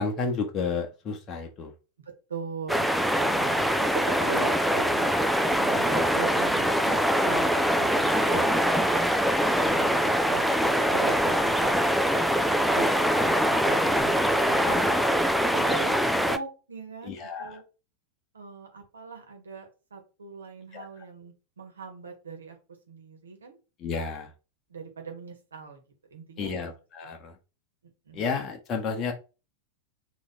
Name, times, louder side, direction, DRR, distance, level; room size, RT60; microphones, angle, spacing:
voice 1, 0.0-1.7 8.3-8.5 13.5-13.9 14.5-14.9 17.0-17.5 20.7-20.8 23.8-24.3 26.4-27.3 28.1-29.1, left 4 dB, 30° left, 3 dB, 1.0 m, -32 dB
voice 2, 2.3-2.9 3.2-5.1 5.6-7.0 7.2-9.0 9.7-11.6 12.0-17.6 18.3-22.6 22.9-23.6 24.7-25.8 26.1-26.7 27.0-27.1 28.0-28.2, right 5 dB, 70° right, 3 dB, 1.5 m, -40 dB
sound 1, 2.7-16.4, equal, ahead, 0.4 m, -23 dB
4.0 x 3.0 x 3.9 m, 0.31 s
figure-of-eight pair, 90°, 0 cm